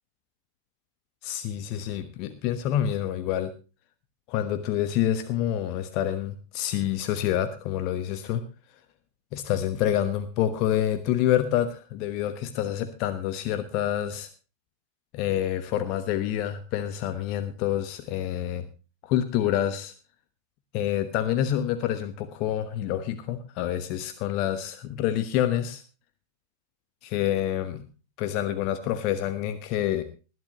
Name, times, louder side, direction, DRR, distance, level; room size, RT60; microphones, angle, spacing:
voice 1, 1.2-3.5 4.3-8.4 9.3-14.3 15.1-18.7 19.0-19.9 20.7-25.8 27.0-27.8 28.2-30.0, left 11 dB, 40° left, 10 dB, 1.2 m, -27 dB
20.5 x 11.0 x 3.0 m, 0.33 s
figure-of-eight pair, 90°, 0 cm